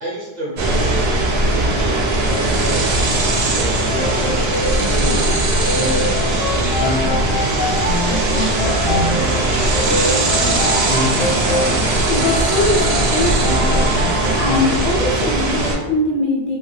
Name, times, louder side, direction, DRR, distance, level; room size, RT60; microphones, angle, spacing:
voice 1, 0.0-1.1 1.4-3.2 3.5-5.3 5.6-6.4 6.8-7.2 8.0-9.1 9.4-10.3, right 1 dB, 50° right, -4 dB, 0.7 m, -31 dB
sound 1, 0.6-15.8, right 2 dB, 80° right, 0.8 m, -19 dB
Piano, 3.8-11.9 12.2-14.6, left 1 dB, 20° left, 0.4 m, -24 dB
voice 2, 12.1-13.7 14.3-16.6, left 2 dB, 60° left, -1 dB, 0.6 m, -21 dB
2.8 x 2.2 x 3.0 m, 1.1 s
omnidirectional pair, 1.0 m